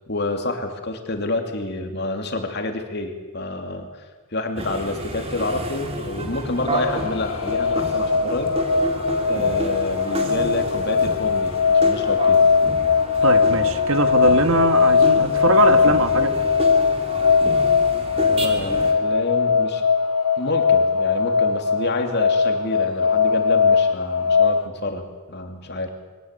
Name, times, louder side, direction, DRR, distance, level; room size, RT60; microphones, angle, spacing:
voice 1, 0.1-4.0 4.3-8.5 9.3-12.4 18.3-19.8 20.4-25.9, left 2 dB, 50° left, 5 dB, 2.8 m, -28 dB
sound 1, 4.6-18.9, equal, 30° right, 2.8 m, -31 dB
sound 2, 6.5-24.7, left 5 dB, 90° left, 1.3 m, -20 dB
voice 2, 13.2-16.3, right 3 dB, 70° right, 9 dB, 1.6 m, -22 dB
23.0 x 18.0 x 8.4 m, 1.3 s
head